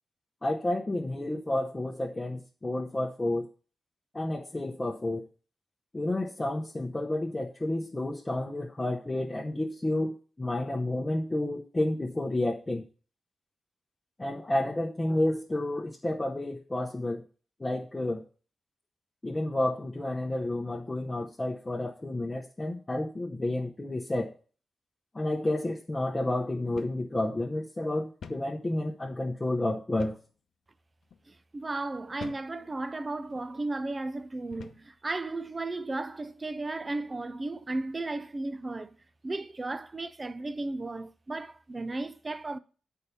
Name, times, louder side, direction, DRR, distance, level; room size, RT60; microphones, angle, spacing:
voice 1, 0.4-3.5 4.1-5.3 5.9-12.8 14.2-17.2 17.6-18.2 19.2-24.4 25.1-30.2, left 1 dB, 20° left, 0.8 m, -30 dB
sound 1, 26.8-27.1 27.4-27.5 28.2-28.5 30.0-30.3 31.0-31.2 32.2-32.5 33.3-33.5 34.5-34.9, left 6 dB, 75° left, 0.7 m, -45 dB
voice 2, 31.3-39.0 39.2-42.6, right 2 dB, 25° right, 0.5 m, -35 dB
8.5 x 4.6 x 7.0 m
wide cardioid pair, 110°, 0 cm